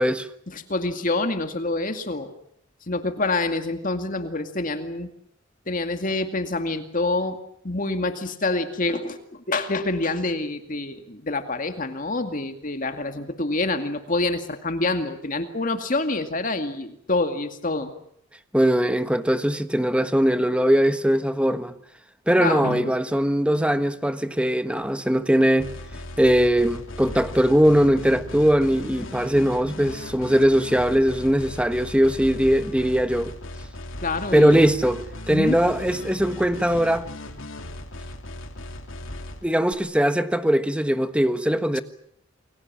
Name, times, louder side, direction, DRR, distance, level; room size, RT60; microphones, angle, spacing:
voice 1, 0.5-2.3 2.9-5.1 5.7-7.4 7.6-9.2 9.5-17.9 22.4-22.9 34.0-34.7 35.3-35.6, left 2 dB, 40° left, 2.3 m, -26 dB
voice 2, 18.5-21.7 22.3-25.7 26.2-33.3 34.3-35.0 35.3-37.1 39.4-41.8, equal, 5° right, 1.3 m, -20 dB
sound 1, 25.6-39.7, left 1 dB, 75° left, 3.1 m, -38 dB
29.0 x 22.5 x 7.5 m
head